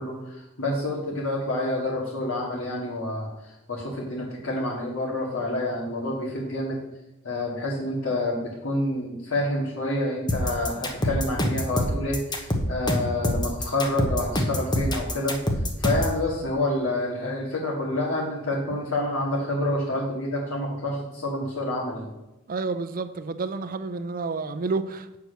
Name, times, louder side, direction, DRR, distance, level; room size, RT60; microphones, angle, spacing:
voice 1, 0.0-6.8 7.2-15.4 15.8-22.1, left 1 dB, 65° left, 2.2 m, -28 dB
sound 1, 10.3-16.2, left 1 dB, 20° left, 1.0 m, -25 dB
voice 2, 22.5-25.2, right 3 dB, 40° right, 0.5 m, -30 dB
8.1 x 4.7 x 6.6 m
head